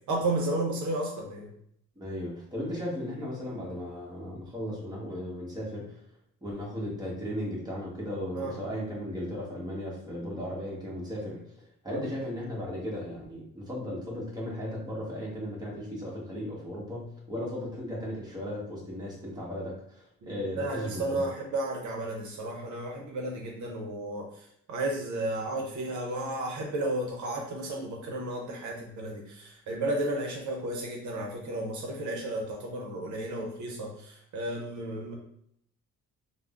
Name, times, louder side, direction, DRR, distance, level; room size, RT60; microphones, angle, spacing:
voice 1, 0.1-1.5 8.3-8.6 11.9-12.0 20.2-24.3 24.7-35.1, right 1 dB, 70° right, 0 dB, 0.7 m, -33 dB
voice 2, 2.0-6.0 6.4-11.4 11.8-21.3, equal, 15° right, -4 dB, 1.2 m, -36 dB
3.4 x 2.1 x 2.4 m, 0.70 s
cardioid pair, 90°, 30 cm